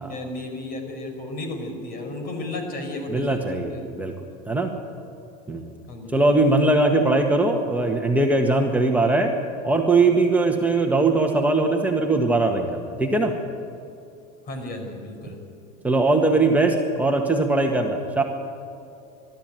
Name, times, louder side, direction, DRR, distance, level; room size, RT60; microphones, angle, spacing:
voice 1, 0.1-3.9 5.9-6.2 14.5-15.4, left 2 dB, 45° left, 4 dB, 5.2 m, -33 dB
voice 2, 3.1-4.2 4.5-4.7 5.5-5.7 6.1-9.3 9.6-13.3 15.8-18.2, right 2 dB, 5° right, 1 dB, 1.7 m, -20 dB
21.5 x 13.0 x 9.3 m, 2.6 s
supercardioid pair, 120°, 21 cm